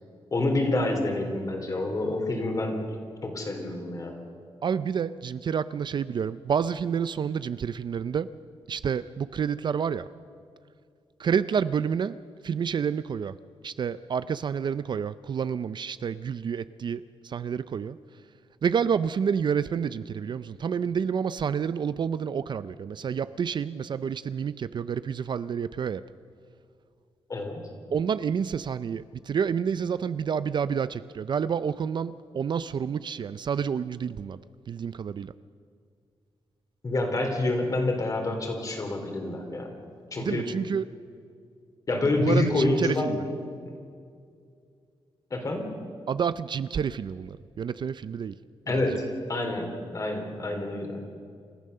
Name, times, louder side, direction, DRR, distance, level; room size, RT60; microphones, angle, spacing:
voice 1, 0.3-2.8 3.2-4.2 27.3-27.6 36.8-39.7 40.1-40.4 41.9-43.4 45.3-45.7 48.7-49.0 49.3-49.7 49.9-51.0, left 2 dB, 35° left, 3 dB, 3.4 m, -27 dB
voice 2, 4.6-8.3 8.7-10.1 11.2-12.2 12.4-13.4 13.6-18.0 18.6-26.0 27.9-34.4 34.7-35.3 40.2-40.9 42.2-43.2 46.1-48.3 48.8-48.9, right 7 dB, 50° right, 15 dB, 0.4 m, -29 dB
28.0 x 14.5 x 6.7 m, 2.3 s
wide cardioid pair, 175°, 10 cm